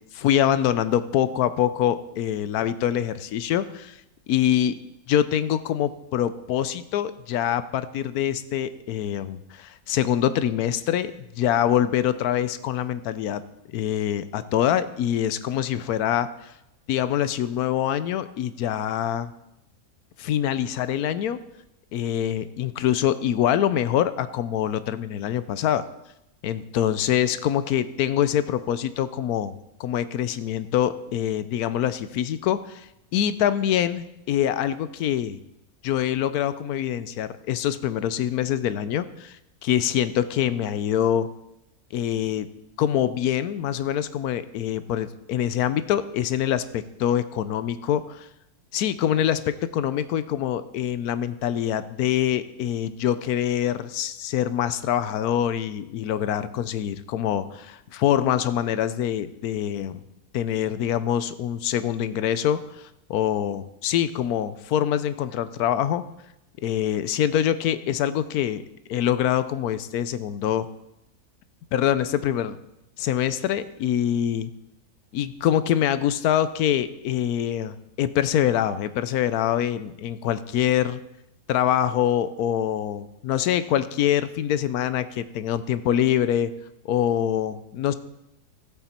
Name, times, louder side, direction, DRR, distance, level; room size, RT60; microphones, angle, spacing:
voice 1, 0.1-4.0 4.3-4.8 5.1-13.4 13.7-16.5 16.9-19.3 20.2-21.4 21.9-25.8 26.4-29.5 29.8-35.4 35.8-41.3 41.9-42.5 42.8-48.3 48.7-60.0 60.3-66.0 66.6-68.6 68.9-70.7 71.7-72.6 73.0-74.5 75.1-81.0 81.5-86.5 86.8-87.9, left 10 dB, 80° left, 13 dB, 1.1 m, -25 dB
14.5 x 8.0 x 4.3 m, 0.88 s
omnidirectional pair, 1.6 m